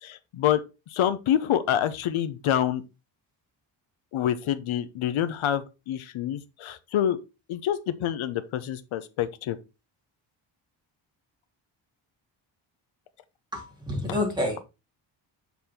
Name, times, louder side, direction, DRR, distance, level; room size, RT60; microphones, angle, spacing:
voice 1, 0.0-0.6 0.9-2.8 4.1-7.2 7.5-9.6, left 10 dB, 90° left, 0.9 m, -27 dB
voice 2, 13.5-14.6, left 1 dB, 10° right, 2.7 m, -28 dB
7.0 x 4.2 x 4.2 m
wide cardioid pair, 165°, 47 cm